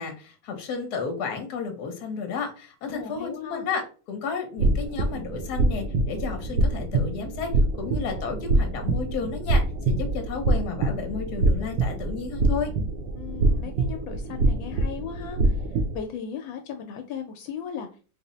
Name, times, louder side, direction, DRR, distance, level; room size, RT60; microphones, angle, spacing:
voice 1, 0.0-3.8 4.1-7.5 7.8-12.7, left 5 dB, 65° left, 4 dB, 1.3 m, -32 dB
voice 2, 2.9-3.7 13.1-15.7 15.9-17.9, left 7 dB, 80° left, 5 dB, 1.3 m, -37 dB
sound 1, 4.6-16.0, right 2 dB, 75° right, 1.2 m, -25 dB
3.8 x 2.0 x 3.9 m, 0.36 s
omnidirectional pair, 2.1 m